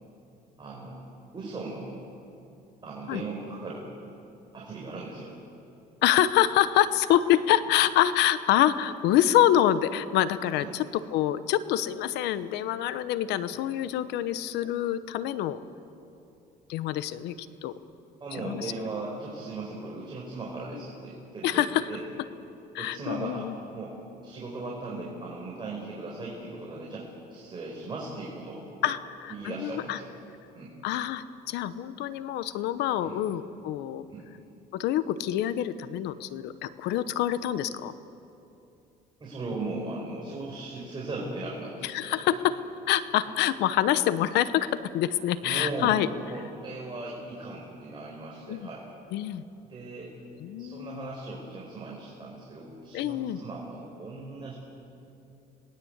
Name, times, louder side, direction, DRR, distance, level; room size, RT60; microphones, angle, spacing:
voice 1, 0.6-1.0 1.3-1.9 2.8-3.9 4.5-5.3 10.6-10.7 13.5-13.6 18.2-22.0 22.8-24.0 24.2-28.9 29.3-30.1 30.5-30.7 33.0-33.2 34.1-34.3 39.2-42.2 45.4-46.0 46.3-48.9 49.6-50.1 50.6-54.6, right 3 dB, 30° right, -3 dB, 5.1 m, -38 dB
voice 2, 6.0-15.6 16.7-17.4 17.6-17.7 18.3-18.7 21.4-21.8 22.7-23.5 28.8-30.0 30.8-34.0 34.7-37.9 41.8-42.6 42.9-46.1 48.5-48.7 49.1-49.4 50.4-51.1 52.9-53.4, left 12 dB, 85° left, 14 dB, 1.0 m, -26 dB
27.0 x 19.5 x 8.2 m, 2.8 s
cardioid pair, 110°, 17 cm